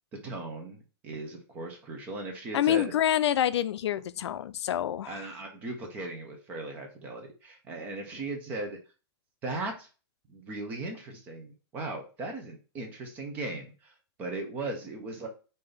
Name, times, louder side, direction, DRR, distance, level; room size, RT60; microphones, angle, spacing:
voice 1, 0.2-2.9 5.0-8.8 9.4-9.9 10.3-13.9 14.2-15.3, right 2 dB, 10° right, 0.5 m, -37 dB
voice 2, 2.5-5.2, left 11 dB, 85° left, 0.4 m, -27 dB
3.8 x 2.6 x 3.3 m
hypercardioid pair, 175°, 14 cm